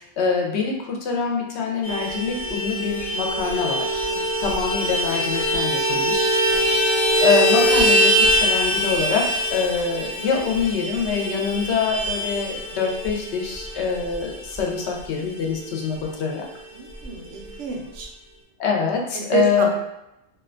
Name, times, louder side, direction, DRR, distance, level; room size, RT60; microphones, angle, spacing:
voice 1, 0.0-4.0 4.4-6.3 7.2-16.5 18.6-19.7, left 5 dB, 80° left, 0 dB, 0.8 m, -25 dB
Vehicle horn car horn honking, 1.8-15.7 16.0-16.1 16.4-16.6 16.9-17.6, equal, 25° left, 0.5 m, -23 dB
voice 2, 6.5-6.8 16.7-18.1 19.1-19.7, right 6 dB, 90° right, 1 dB, 0.9 m, -29 dB
2.6 x 2.1 x 2.4 m, 0.88 s
omnidirectional pair, 1.1 m